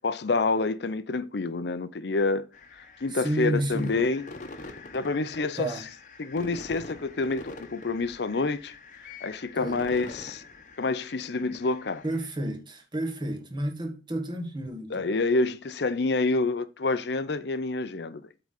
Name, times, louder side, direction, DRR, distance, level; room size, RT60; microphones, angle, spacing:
voice 1, 0.0-2.5 3.0-4.3 4.9-5.7 6.2-8.7 9.0-10.4 10.8-12.0 14.9-18.3, left 3 dB, 65° left, 0.6 m, -28 dB
sound 1, 2.5-12.3, left 3 dB, 45° left, 1.0 m, -45 dB
voice 2, 3.1-4.0 5.6-5.9 9.5-9.8 12.0-15.1, right 1 dB, 25° right, 1.5 m, -31 dB
8.3 x 3.9 x 6.4 m
head